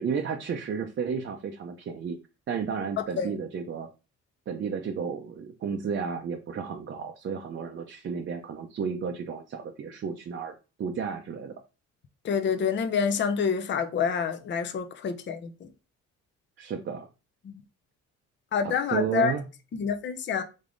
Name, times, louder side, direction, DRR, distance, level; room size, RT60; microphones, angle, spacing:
voice 1, 0.0-2.2 2.5-3.9 4.5-10.5 10.8-11.5 16.6-17.1 18.6-19.5, right 6 dB, 40° right, 0.5 m, -32 dB
voice 2, 12.2-15.7 18.5-19.3 19.7-20.4, left 6 dB, 40° left, 0.5 m, -27 dB
3.5 x 3.4 x 2.5 m
cardioid pair, 90°, 30 cm